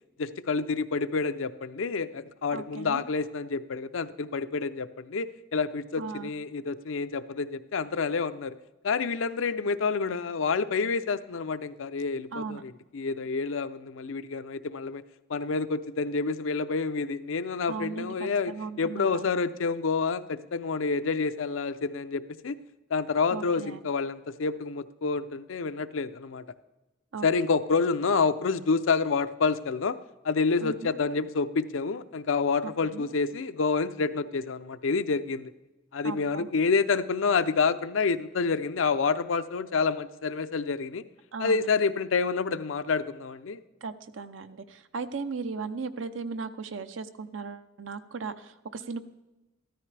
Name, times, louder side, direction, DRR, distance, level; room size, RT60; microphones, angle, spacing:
voice 1, 0.2-5.3 5.5-8.6 8.8-15.0 15.3-18.5 18.8-22.6 22.9-26.4 27.2-30.0 30.2-35.5 35.9-41.0 41.4-43.6, left 4 dB, 90° left, 12 dB, 0.6 m, -28 dB
voice 2, 2.5-3.0 6.0-6.3 12.3-12.6 17.7-19.3 23.3-23.8 27.1-27.3 27.7-27.8 30.6-30.9 32.6-33.1 36.0-36.5 41.3-41.7 43.8-49.0, right 4 dB, 80° right, 11 dB, 0.7 m, -37 dB
14.5 x 13.0 x 3.3 m, 1.1 s
head